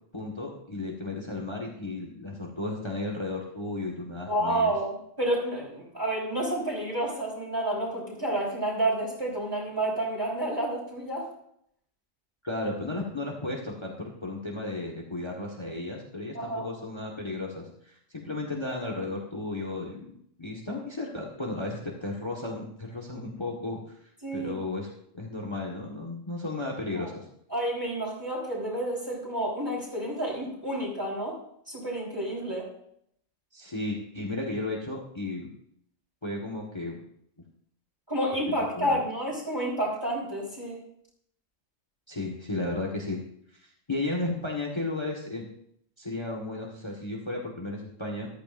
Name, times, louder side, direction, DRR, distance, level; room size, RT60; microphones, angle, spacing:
voice 1, 0.1-4.7 12.4-20.1 20.4-23.8 24.3-24.9 25.1-27.2 33.5-35.5 36.2-37.0 38.5-39.0 42.1-43.2 43.6-45.5 46.0-48.3, left 2 dB, 20° left, 0 dB, 1.5 m, -34 dB
voice 2, 4.3-11.3 16.3-16.6 24.2-24.6 26.9-27.0 27.5-31.4 31.7-32.7 38.1-40.8, right 1 dB, 15° right, -6 dB, 3.9 m, -30 dB
14.5 x 12.0 x 2.6 m, 0.71 s
omnidirectional pair, 1.3 m